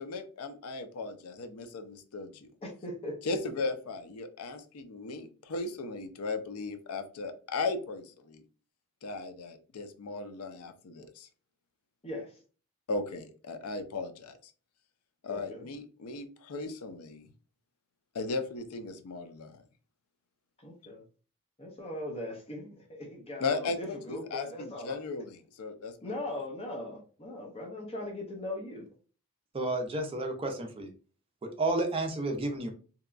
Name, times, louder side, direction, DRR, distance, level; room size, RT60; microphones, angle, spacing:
voice 1, 0.0-2.5 3.2-8.4 9.0-11.3 12.9-14.4 15.2-17.3 18.1-19.6 23.4-26.3, left 3 dB, 75° left, 8 dB, 0.5 m, -37 dB
voice 2, 2.6-3.2 12.0-12.3 15.3-15.6 20.6-21.0 21.6-24.9 26.0-28.9, left 1 dB, 25° left, 0 dB, 0.6 m, -39 dB
voice 3, 29.5-30.9 31.4-32.7, right 2 dB, 25° right, 3 dB, 0.5 m, -31 dB
2.8 x 2.2 x 2.4 m, 0.38 s
head